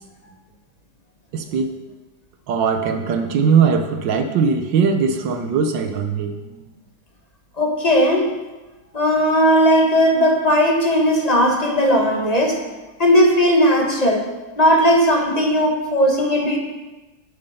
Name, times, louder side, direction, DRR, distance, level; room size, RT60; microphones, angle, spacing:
voice 1, 1.3-1.7 2.5-6.6, right 6 dB, 70° right, 7 dB, 1.5 m, -20 dB
voice 2, 7.6-8.3 8.9-12.6 13.0-14.2 14.6-16.6, equal, 25° left, 1 dB, 0.9 m, -17 dB
8.6 x 6.9 x 5.5 m, 1.1 s
omnidirectional pair, 2.2 m